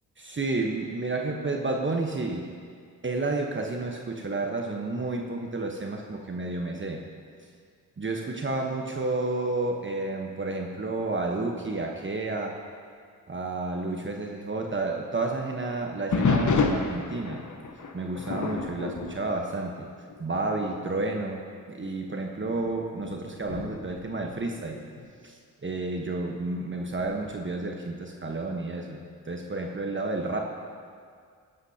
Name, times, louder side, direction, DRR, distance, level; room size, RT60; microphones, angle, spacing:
voice 1, 0.2-2.5 3.0-7.0 7.4-7.5 8.0-12.5 13.3-17.4 17.9-19.9 20.2-21.4 21.7-24.8 25.2-30.4, right 2 dB, 30° right, 1 dB, 1.2 m, -31 dB
sound 1, 16.1-20.3 20.6-20.9 21.6-21.7 22.4-25.1 26.9-27.4, left 4 dB, 45° left, 1.1 m, -30 dB
16.0 x 11.0 x 2.9 m, 2.1 s
hypercardioid pair, 45°, 40 cm